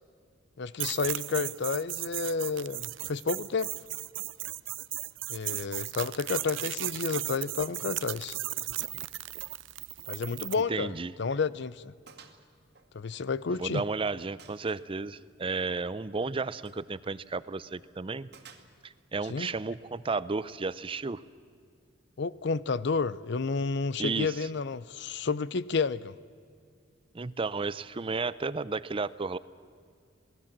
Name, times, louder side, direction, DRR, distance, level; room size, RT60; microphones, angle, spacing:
voice 1, 0.6-3.7 5.3-8.4 10.1-11.9 12.9-13.8 19.3-19.5 22.2-26.1, left 4 dB, 65° left, 0.6 m, -31 dB
sound 1, 0.8-10.6, right 16 dB, 75° right, 0.6 m, -36 dB
Gunshot gunfire, 10.3-10.5 10.8-10.9 11.4-11.5 12.1-12.4 12.8-13.7 14.4-14.9 16.5-16.9 18.3-19.1, right 6 dB, 60° right, 2.0 m, -54 dB
voice 2, 10.7-11.1 13.6-18.3 18.8-21.2 24.0-24.4 27.1-29.4, right 4 dB, 30° right, 0.5 m, -33 dB
27.5 x 19.0 x 7.4 m
head